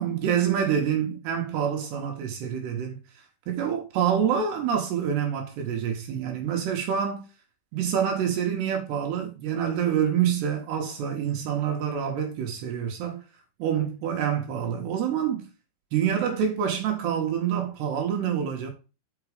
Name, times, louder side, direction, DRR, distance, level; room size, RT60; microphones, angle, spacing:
voice 1, 0.0-7.2 7.7-13.2 13.6-15.5 15.9-18.7, right 8 dB, 70° right, 3.0 m, -27 dB
6.0 x 6.0 x 4.9 m
omnidirectional pair, 5.3 m